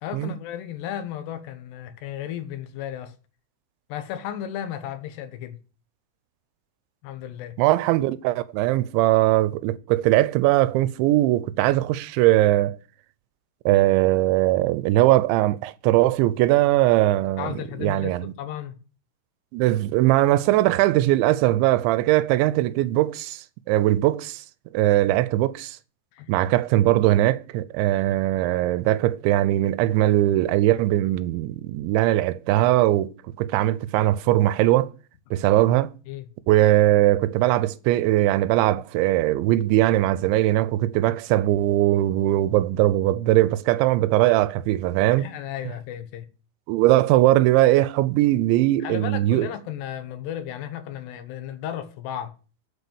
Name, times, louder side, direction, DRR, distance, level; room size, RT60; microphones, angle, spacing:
voice 1, 0.0-3.1 3.9-5.6 7.0-7.6 17.4-18.7 26.1-26.3 36.1-36.3 45.2-46.3 48.8-52.3, left 10 dB, 75° left, 3.1 m, -34 dB
voice 2, 7.6-12.8 13.7-18.3 19.5-24.4 24.7-25.8 26.3-33.1 33.4-34.9 35.3-35.9 36.5-45.3 46.7-49.5, right 15 dB, 90° right, 3.0 m, -20 dB
8.8 x 8.3 x 6.9 m
omnidirectional pair, 5.2 m